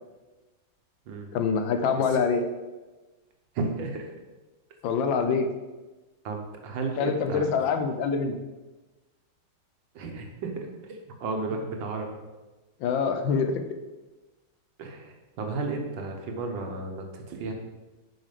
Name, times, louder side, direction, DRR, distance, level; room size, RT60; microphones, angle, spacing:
voice 1, 1.3-2.4 4.8-5.5 7.0-8.4 12.8-13.6, left 5 dB, 90° left, 7 dB, 1.5 m, -25 dB
voice 2, 3.6-4.1 6.2-7.6 10.0-10.5 10.8-12.2 14.8-17.5, right 3 dB, 80° right, 3 dB, 1.8 m, -33 dB
6.7 x 5.9 x 5.1 m, 1.2 s
omnidirectional pair, 2.0 m